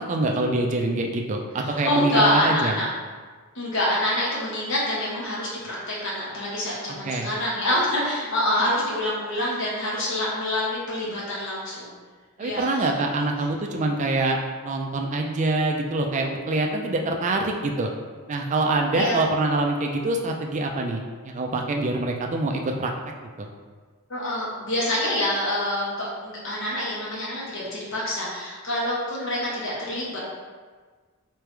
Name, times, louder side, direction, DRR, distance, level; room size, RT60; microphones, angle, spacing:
voice 1, 0.1-2.7 7.0-7.3 12.4-14.4 14.6-17.9 18.3-22.9 23.4-23.5, right 2 dB, 35° right, 2 dB, 0.4 m, -25 dB
voice 2, 1.6-2.9 3.5-11.9 12.4-12.9 18.9-19.2 24.1-30.2, left 1 dB, 55° left, -6 dB, 1.1 m, -26 dB
3.4 x 3.3 x 3.2 m, 1.5 s
head